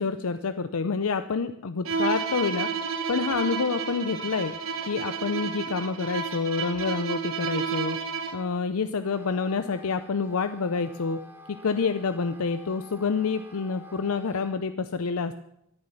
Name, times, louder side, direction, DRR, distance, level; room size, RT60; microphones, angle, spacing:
voice 1, 0.0-2.7 3.1-4.5 4.9-8.0 8.3-11.2 11.6-15.3, left 5 dB, 85° left, 10 dB, 0.6 m, -28 dB
Bowed string instrument, 1.8-8.5, right 6 dB, 70° right, 1.2 m, -31 dB
Wind instrument woodwind instrument, 9.0-14.6, left 2 dB, 10° right, 1.3 m, -49 dB
13.0 x 9.7 x 7.0 m, 0.77 s
head